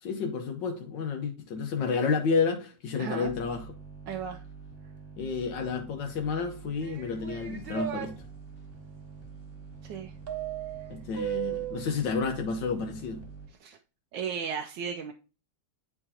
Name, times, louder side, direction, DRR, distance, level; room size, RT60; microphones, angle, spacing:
voice 1, 0.0-3.6 5.2-8.1 10.9-13.2, left 5 dB, 80° left, 1.7 m, -30 dB
voice 2, 3.0-3.3 4.1-4.4 9.8-10.1 13.6-13.8 14.1-15.1, right 7 dB, 85° right, 1.3 m, -35 dB
sound 1, 3.2-13.5, right 5 dB, 10° left, 2.0 m, -46 dB
sound 2, 6.8-8.1 10.3-11.9, right 11 dB, 40° right, 1.0 m, -35 dB
9.8 x 4.7 x 2.8 m
omnidirectional pair, 1.9 m